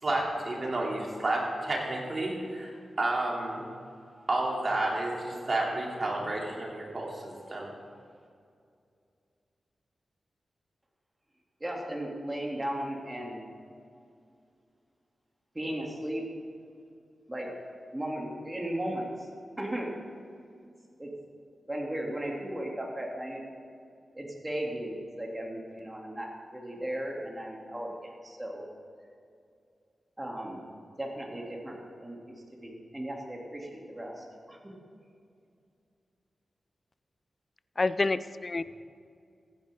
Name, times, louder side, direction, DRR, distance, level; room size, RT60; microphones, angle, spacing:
voice 1, 0.0-2.7 3.0-3.6 4.3-7.7, right 2 dB, 50° right, -2 dB, 3.3 m, -31 dB
voice 2, 11.6-13.4 15.5-16.2 17.3-17.5 17.9-19.3 19.6-20.0 21.0-21.1 21.7-23.4 24.1-28.6 30.2-30.7 31.0-34.6, right 1 dB, 20° right, -1 dB, 3.0 m, -36 dB
voice 3, 37.8-38.6, left 3 dB, 40° left, 15 dB, 0.4 m, -28 dB
15.5 x 10.5 x 3.8 m, 2.4 s
cardioid pair, 55°, 0 cm